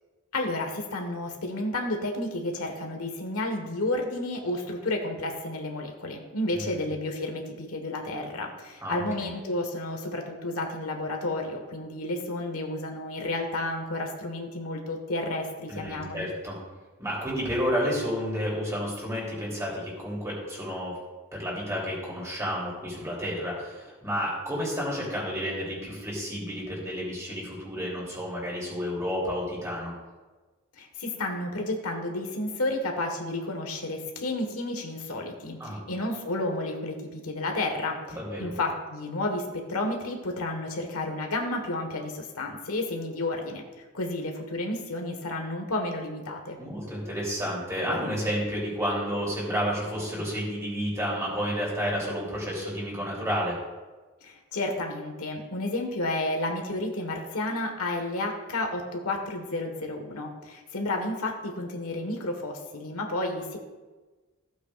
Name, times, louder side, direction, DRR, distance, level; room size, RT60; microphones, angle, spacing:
voice 1, 0.3-16.3 30.8-46.6 54.2-63.6, left 2 dB, 85° left, 3 dB, 1.5 m, -31 dB
voice 2, 6.5-6.8 8.8-9.3 15.7-16.6 17.0-21.0 21.3-29.9 35.6-35.8 38.2-38.5 46.6-53.6, equal, 15° right, -4 dB, 3.1 m, -31 dB
15.5 x 8.3 x 2.5 m, 1.3 s
head